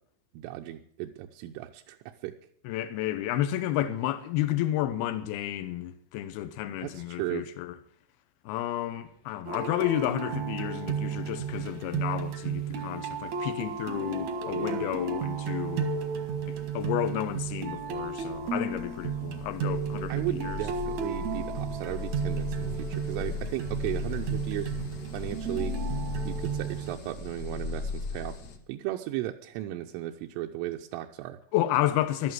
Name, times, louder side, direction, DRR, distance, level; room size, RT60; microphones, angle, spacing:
voice 1, 0.3-2.3 6.8-7.5 14.5-14.9 20.1-24.7 25.1-25.7 26.2-28.4 28.7-31.4, right 14 dB, 85° right, 3.3 m, -35 dB
voice 2, 2.6-7.7 8.4-15.9 16.5-20.6 31.5-32.3, left 12 dB, 75° left, 2.4 m, -31 dB
sound 1, 9.5-26.9, right 6 dB, 65° right, 1.9 m, -33 dB
sound 2, 10.9-11.0 11.3-28.6, left 4 dB, 60° left, 1.7 m, -39 dB
13.5 x 12.5 x 7.7 m
omnidirectional pair, 5.7 m